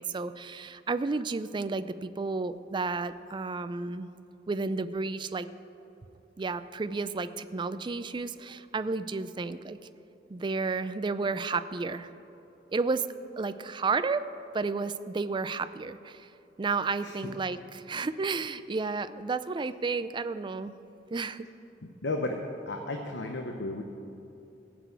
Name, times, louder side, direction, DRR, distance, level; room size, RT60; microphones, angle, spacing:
voice 1, 0.0-4.1 4.5-5.5 6.4-9.8 10.3-12.1 12.7-13.0 13.4-14.3 14.5-16.3 16.6-20.8 21.1-21.5, right 4 dB, 25° right, 13 dB, 0.4 m, -32 dB
voice 2, 21.8-22.4 22.7-23.8, left 2 dB, 70° left, 3 dB, 0.9 m, -34 dB
16.5 x 6.1 x 8.0 m, 2.8 s
head